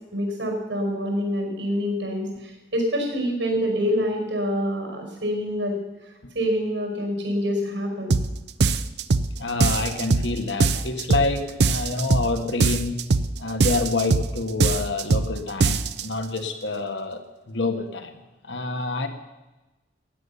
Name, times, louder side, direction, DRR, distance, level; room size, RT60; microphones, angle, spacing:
voice 1, 0.1-5.8 6.3-8.2, equal, 90° right, 2 dB, 5.2 m, -26 dB
sound 1, 8.1-8.3 8.6-9.3 9.6-10.3 10.6-11.3 11.6-12.3 12.6-13.3 13.6-14.3 14.6-15.3 15.6-16.0, right 4 dB, 65° right, 0.6 m, -21 dB
voice 2, 9.4-13.0 13.4-17.2 17.5-18.2 18.4-19.1, left 3 dB, 80° left, 6 dB, 1.6 m, -27 dB
15.5 x 9.8 x 6.9 m, 1.1 s
head